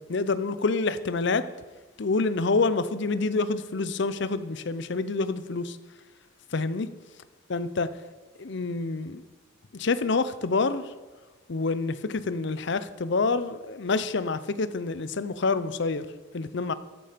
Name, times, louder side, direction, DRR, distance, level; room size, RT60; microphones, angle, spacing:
voice 1, 0.1-1.4 2.0-5.8 6.5-6.9 7.5-7.9 8.4-9.2 9.7-10.8 11.5-16.1 16.3-16.7, left 3 dB, 60° left, 14 dB, 0.6 m, -27 dB
13.0 x 10.0 x 5.1 m, 1.3 s
head